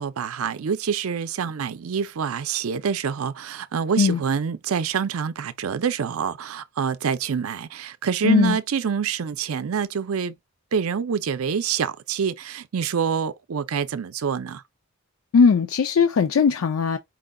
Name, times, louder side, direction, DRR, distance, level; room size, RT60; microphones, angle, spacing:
voice 1, 0.0-10.3 10.7-14.6, right 7 dB, 80° right, 0.5 m, -26 dB
voice 2, 8.2-8.6 15.3-17.0, left 5 dB, 75° left, 0.4 m, -19 dB
4.7 x 2.2 x 3.6 m
head